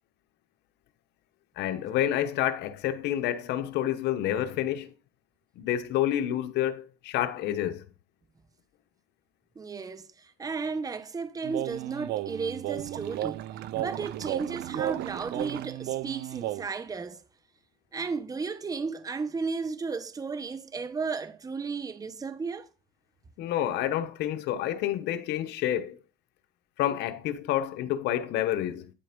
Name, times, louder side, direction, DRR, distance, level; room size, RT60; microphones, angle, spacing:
voice 1, 1.6-4.9 5.6-7.8 23.4-26.0 26.8-28.9, left 11 dB, 85° left, 1.1 m, -29 dB
voice 2, 9.6-13.5 13.7-17.2 17.9-22.7, right 4 dB, 20° right, 0.9 m, -34 dB
sound 1, 11.4-16.7, right 14 dB, 80° right, 0.7 m, -34 dB
11.0 x 4.4 x 5.2 m
cardioid pair, 110°, 17 cm